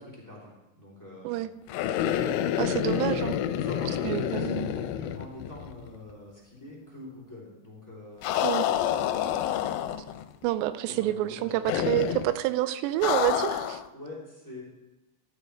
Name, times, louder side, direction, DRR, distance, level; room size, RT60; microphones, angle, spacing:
voice 1, 0.0-1.4 3.5-8.4 10.9-11.8 13.9-14.6, left 1 dB, 5° left, -6 dB, 2.6 m, -44 dB
sound 1, 1.7-5.8 6.1-6.2 8.2-10.2 11.7-12.3 13.0-13.9, left 10 dB, 90° left, 2.8 m, -28 dB
voice 2, 2.6-3.4 4.0-4.7 8.4-8.7 10.4-13.8, right 14 dB, 85° right, 12 dB, 2.8 m, -28 dB
13.0 x 12.0 x 3.4 m, 1.1 s
omnidirectional pair, 5.0 m